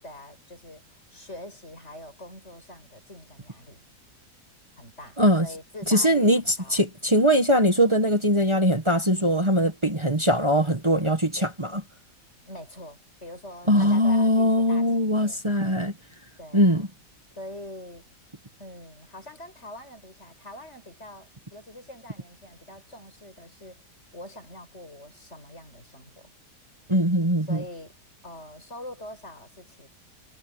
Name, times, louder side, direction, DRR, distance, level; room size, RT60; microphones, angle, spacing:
voice 1, 0.0-3.8 4.8-6.9 12.4-15.4 16.4-16.9 17.4-18.1 18.6-23.8 24.1-26.3 27.5-29.9, left 1 dB, 40° left, 8.1 m, -44 dB
voice 2, 5.9-11.8 13.7-15.9 16.5-16.9 26.9-27.6, equal, 15° right, 1.6 m, -21 dB
omnidirectional pair, 1.8 m